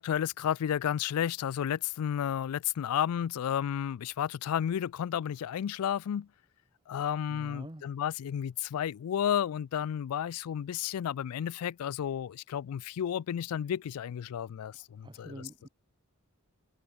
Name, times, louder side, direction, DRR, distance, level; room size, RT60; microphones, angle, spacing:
voice 1, 0.0-6.3 6.9-15.3, left 9 dB, 85° left, 0.3 m, -32 dB
voice 2, 7.3-7.8 14.7-15.7, right 1 dB, 20° right, 1.1 m, -47 dB
head